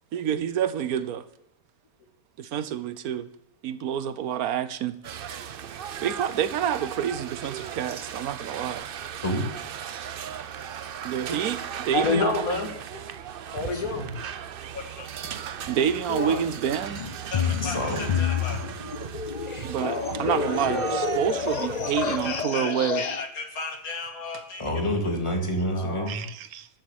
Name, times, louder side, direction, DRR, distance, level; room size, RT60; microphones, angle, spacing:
voice 1, 0.1-1.2 2.4-3.3 3.6-5.0 6.0-8.9 11.0-12.6 15.7-17.0 19.6-23.1 26.1-26.7, right 9 dB, 90° right, 1.3 m, -28 dB
sound 1, 5.0-22.4, right 8 dB, 55° right, 0.6 m, -36 dB
voice 2, 11.9-12.7 13.5-14.1 14.7-15.1 16.1-16.4 17.3-18.6 19.8-21.0 22.2-24.6 25.7-26.1, left 4 dB, 85° left, 2.2 m, -31 dB
voice 3, 13.7-14.1 14.9-15.0 17.6-18.2 24.6-26.3, equal, 20° left, 2.2 m, -28 dB
sound 2, 17.0-23.2, left 8 dB, 65° left, 0.4 m, -29 dB
13.5 x 7.3 x 7.2 m
omnidirectional pair, 1.5 m